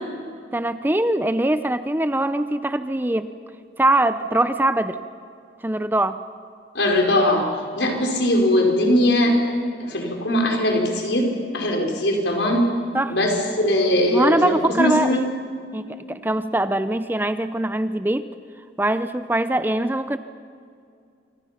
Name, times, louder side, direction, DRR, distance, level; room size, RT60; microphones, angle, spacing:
voice 1, 0.5-3.3 3.8-5.0 5.6-6.2 12.9-13.2 14.1-15.2 15.7-18.3 18.8-20.2, right 1 dB, 10° right, 11 dB, 0.6 m, -22 dB
voice 2, 6.7-7.5 7.8-9.5 9.8-12.7 13.1-15.2, left 1 dB, 75° left, 2 dB, 4.5 m, -20 dB
27.5 x 25.0 x 5.8 m, 2.3 s
head